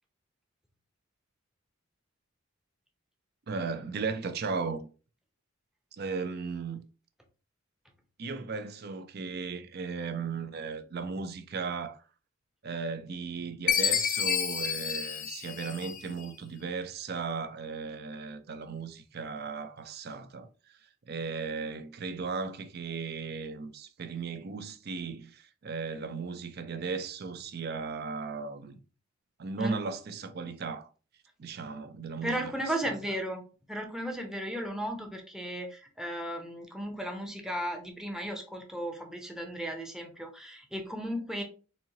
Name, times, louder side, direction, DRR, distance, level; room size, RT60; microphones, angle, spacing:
voice 1, 3.5-4.9 5.9-6.8 8.2-12.0 12.6-20.8 21.1-28.8 29.4-30.9 31.4-32.5 32.8-33.0, right 4 dB, 55° right, 0.5 m, -36 dB
Chime, 13.7-16.2, left 8 dB, 40° left, 0.4 m, -29 dB
voice 2, 32.2-41.4, equal, 5° right, 0.7 m, -35 dB
4.2 x 2.7 x 2.8 m
head